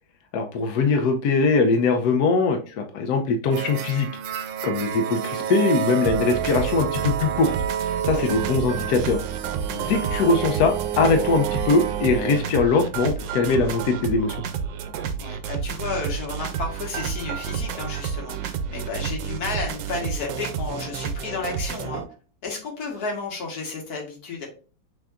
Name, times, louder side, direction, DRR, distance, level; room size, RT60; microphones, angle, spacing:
voice 1, 0.3-4.1 4.6-7.5 8.1-9.2 9.7-14.4, left 4 dB, 70° left, 5 dB, 0.9 m, -21 dB
sound 1, 3.5-12.4, right 9 dB, 90° right, 1.4 m, -29 dB
sound 2, 6.0-22.1, right 7 dB, 75° right, 1.2 m, -30 dB
voice 2, 15.2-22.0 22.4-24.5, left 4 dB, 55° left, 0 dB, 1.8 m, -32 dB
6.1 x 3.5 x 2.4 m, 0.38 s
omnidirectional pair, 2.1 m